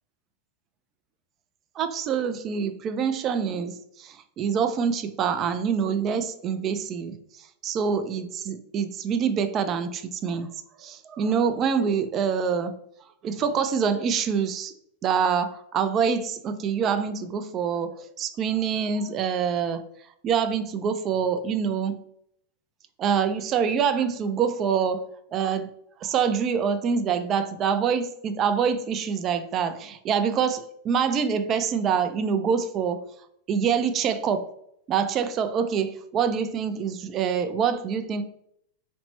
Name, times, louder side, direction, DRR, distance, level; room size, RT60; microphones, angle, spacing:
voice 1, 1.8-7.2 7.6-10.5 10.8-12.7 13.2-14.7 15.0-19.8 20.2-22.0 23.0-25.0 25.3-25.7 26.0-33.0 33.5-34.5 34.9-38.2, right 7 dB, 30° right, 10 dB, 0.3 m, -25 dB
4.2 x 2.0 x 2.9 m, 0.71 s
supercardioid pair, 140°, 0 cm